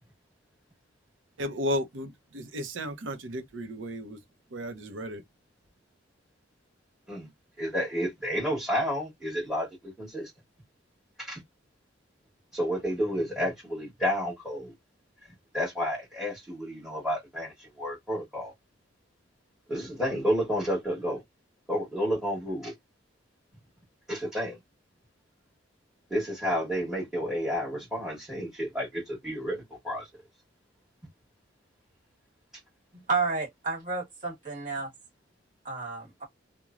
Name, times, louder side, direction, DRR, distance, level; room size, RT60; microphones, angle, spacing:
voice 1, 1.4-4.2 4.5-5.2, equal, 85° right, 0.7 m, -34 dB
voice 2, 7.6-10.3 11.2-11.4 12.5-14.7 15.5-18.5 19.7-21.2 21.7-22.7 24.1-24.6 26.1-30.1, equal, ahead, 1.3 m, -31 dB
voice 3, 32.9-34.9 35.6-36.2, right 4 dB, 45° right, 1.7 m, -31 dB
3.0 x 2.2 x 2.4 m
head